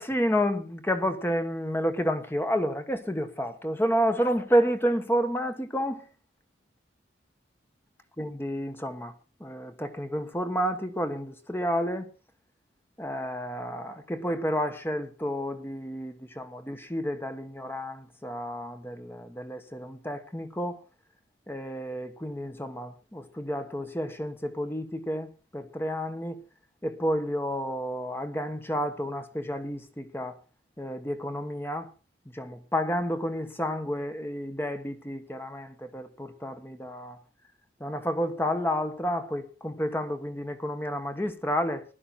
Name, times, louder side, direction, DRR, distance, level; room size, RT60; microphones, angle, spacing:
voice 1, 0.0-6.0 8.2-9.1 9.4-12.1 13.0-20.8 21.5-26.4 26.8-30.3 30.8-31.9 32.3-37.2 37.8-41.8, equal, 10° left, 1.3 m, -30 dB
16.5 x 12.0 x 4.2 m
head